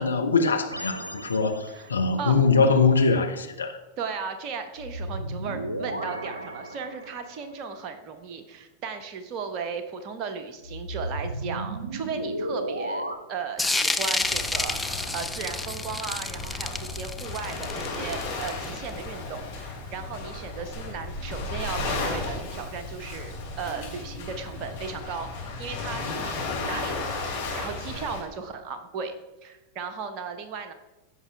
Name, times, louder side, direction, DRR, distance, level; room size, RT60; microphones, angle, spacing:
voice 1, 0.0-3.8, left 4 dB, 75° left, 0.8 m, -22 dB
sound 1, 0.7-2.1 4.8-7.4 10.6-13.2, right 1 dB, 80° right, 0.6 m, -34 dB
voice 2, 1.7-2.4 4.0-26.4 26.7-29.1 29.4-30.7, right 5 dB, 40° right, 1.0 m, -36 dB
sound 2, 13.6-18.9, left 2 dB, 5° left, 0.5 m, -29 dB
Waves surf, 14.2-28.2, left 3 dB, 55° left, 2.9 m, -34 dB
14.0 x 5.5 x 3.5 m
figure-of-eight pair, 90°, 0 cm